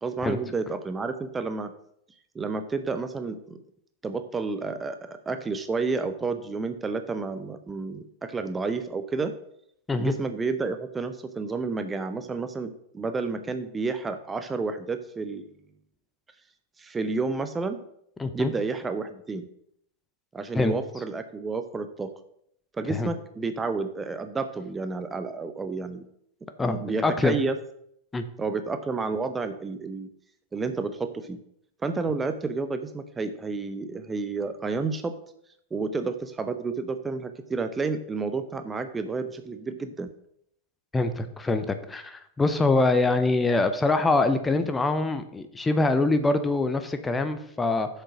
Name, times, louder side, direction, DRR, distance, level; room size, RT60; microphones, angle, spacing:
voice 1, 0.0-1.7 2.3-3.6 4.0-9.3 10.0-15.5 16.8-17.8 18.3-19.5 20.3-22.1 22.8-26.1 26.6-27.6 28.4-30.1 30.5-31.4 31.8-35.1 35.7-40.1, right 4 dB, 15° right, 9 dB, 0.7 m, -30 dB
voice 2, 18.2-18.5 20.5-20.7 22.9-23.1 26.6-26.8 27.0-27.3 28.1-28.2 40.9-47.9, left 3 dB, 10° left, 9 dB, 0.8 m, -24 dB
7.8 x 6.7 x 4.9 m, 0.71 s
figure-of-eight pair, 90°, 0 cm